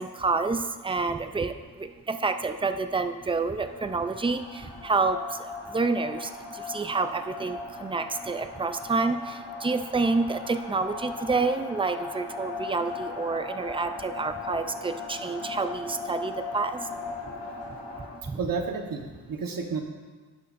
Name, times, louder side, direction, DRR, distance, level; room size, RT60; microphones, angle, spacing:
voice 1, 0.0-17.1 18.0-18.4, right 3 dB, 15° right, 8 dB, 0.3 m, -29 dB
sound 1, 3.5-18.2, left 4 dB, 80° left, 1.6 m, -38 dB
voice 2, 18.4-19.8, right 5 dB, 55° right, 3 dB, 1.1 m, -31 dB
11.5 x 10.5 x 2.5 m, 1.4 s
wide cardioid pair, 140°, 42 cm